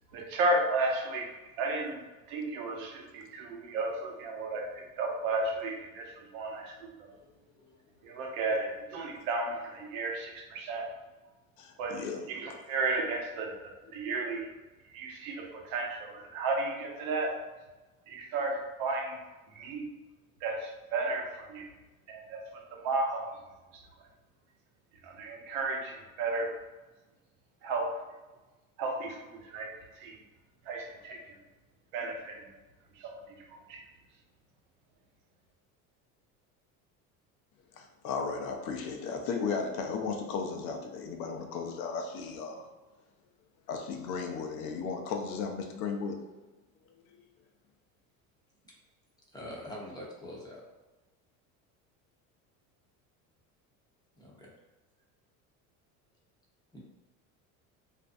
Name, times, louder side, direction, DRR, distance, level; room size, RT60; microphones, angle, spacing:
voice 1, 0.1-1.3 1.6-2.0 2.3-6.7 7.0-7.1 8.0-10.9 11.8-12.0 12.3-14.5 14.9-17.3 18.1-19.2 19.6-19.8 20.4-21.7 22.1-22.4 22.7-23.2 25.0-26.5 27.6-27.9 28.8-29.7 30.0-30.1 30.7-31.4 31.9-32.5 33.0-33.2 33.7-33.8, right 3 dB, 75° right, 0 dB, 0.7 m, -33 dB
voice 2, 11.6-12.3 37.7-42.7 43.7-46.2 46.9-47.3, left 5 dB, 80° left, 4 dB, 0.6 m, -35 dB
voice 3, 49.3-50.6 54.2-54.5 56.7-56.8, left 1 dB, 10° left, -3 dB, 0.7 m, -43 dB
2.5 x 2.1 x 2.5 m, 1.2 s
supercardioid pair, 95°, 41 cm